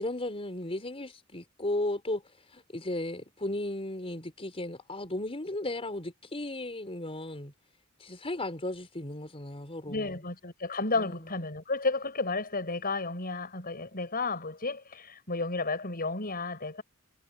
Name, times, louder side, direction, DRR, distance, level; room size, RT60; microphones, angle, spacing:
voice 1, 0.0-7.5 8.0-10.2 10.9-11.3, left 1 dB, 25° left, 4.4 m, -35 dB
voice 2, 9.9-16.8, left 3 dB, 45° left, 7.6 m, -32 dB
head